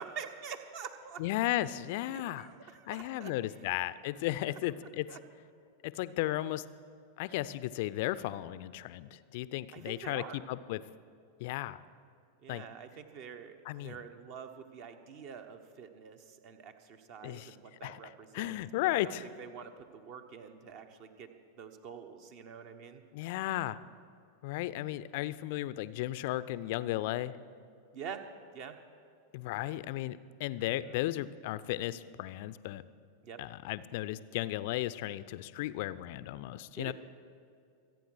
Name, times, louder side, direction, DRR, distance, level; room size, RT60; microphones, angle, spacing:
voice 1, 0.0-1.2 2.1-3.3 3.6-3.7 5.1-5.2 9.7-10.4 12.4-18.6 18.9-21.3 21.6-23.0 27.9-28.2 28.5-28.8 30.6-31.0 33.2-33.4 36.8-36.9, right 7 dB, 45° right, 7 dB, 1.2 m, -46 dB
voice 2, 1.2-2.5 2.9-5.1 5.8-6.6 7.2-10.8 11.4-11.8 12.5-12.6 13.7-14.0 17.2-17.5 17.8-19.3 23.1-23.8 24.4-27.3 29.3-32.8 33.4-36.9, left 15 dB, 50° left, 15 dB, 0.5 m, -35 dB
25.5 x 9.3 x 4.8 m, 2.4 s
figure-of-eight pair, 90°, 0 cm